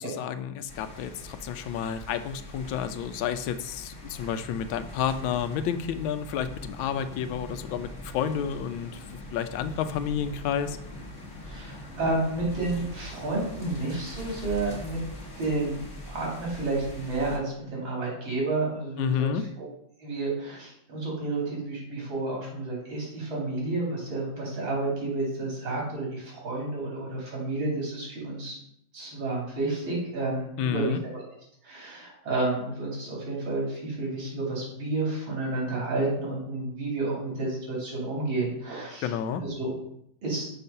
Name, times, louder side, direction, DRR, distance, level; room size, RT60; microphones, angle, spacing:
voice 1, 0.0-10.8 19.0-19.4 30.6-31.0 39.0-39.4, left 8 dB, 85° left, 10 dB, 1.4 m, -30 dB
sound 1, 0.7-17.4, left 1 dB, 40° left, 1.7 m, -42 dB
voice 2, 11.4-15.0 15.4-19.3 19.6-19.7 20.0-28.6 28.9-31.2 31.6-39.1 39.6-39.7 40.2-40.5, right 2 dB, 85° right, -3 dB, 3.3 m, -30 dB
6.5 x 4.0 x 5.5 m, 0.71 s
omnidirectional pair, 2.1 m